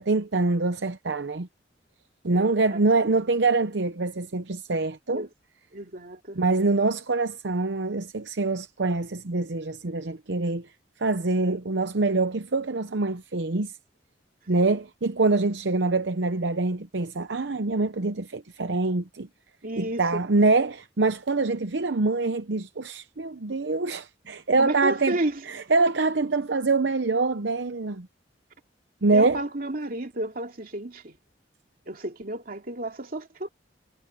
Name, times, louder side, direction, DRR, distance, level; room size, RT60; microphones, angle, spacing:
voice 1, 0.0-1.5 2.2-5.3 6.3-10.7 11.0-13.8 14.5-19.3 19.8-25.2 25.5-28.1 29.0-29.4, right 3 dB, 70° right, 0.8 m, -25 dB
voice 2, 2.3-2.8 5.1-5.3 5.7-6.4 14.5-14.8 19.6-20.2 24.6-25.4 29.1-31.2 31.9-33.5, right 1 dB, 50° right, 2.6 m, -32 dB
head